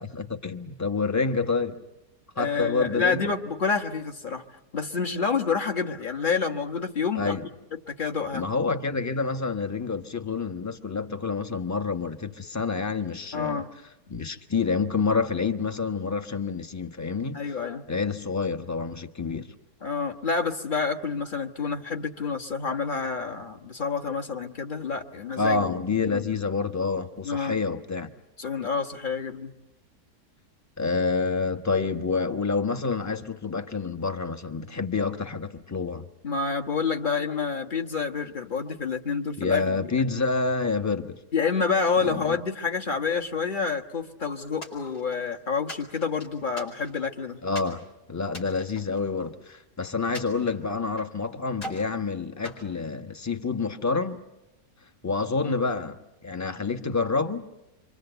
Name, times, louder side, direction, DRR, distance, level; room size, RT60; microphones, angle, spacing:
voice 1, 0.1-1.8 2.4-3.4 7.1-7.4 8.3-13.6 14.1-17.6 17.9-19.5 25.4-28.1 30.8-36.1 39.4-41.2 42.0-42.4 47.4-54.2 55.0-57.5, left 4 dB, 15° left, 0.9 m, -28 dB
voice 2, 2.4-4.4 4.7-7.4 7.9-8.5 13.3-13.7 17.3-17.8 19.8-25.7 26.1-26.2 27.2-27.6 28.4-29.5 36.2-40.1 41.3-47.4 55.4-55.6, left 5 dB, 30° left, 1.4 m, -28 dB
sound 1, 44.6-45.3 45.7-47.1 47.5-47.8 48.3-49.6 50.1-51.2 51.5-51.9 52.4-53.5, left 1 dB, 70° left, 5.1 m, -42 dB
28.0 x 25.0 x 8.0 m
omnidirectional pair, 1.7 m